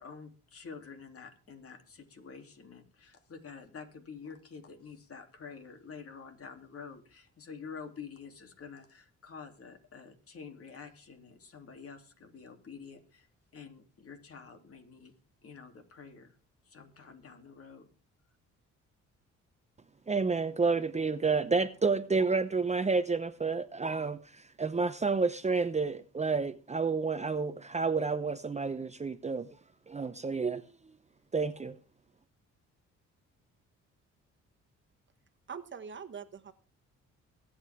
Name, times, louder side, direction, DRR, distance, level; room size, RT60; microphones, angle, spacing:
voice 1, 0.0-13.3 13.5-15.1 15.4-16.3 16.6-17.9, left 5 dB, 50° left, 3.2 m, -48 dB
voice 2, 20.1-29.5 29.9-30.6 31.3-31.8, right 4 dB, 20° right, 0.8 m, -30 dB
voice 3, 35.5-36.5, right 6 dB, 40° right, 1.4 m, -43 dB
22.5 x 8.8 x 3.6 m
cardioid pair, 90°, 30 cm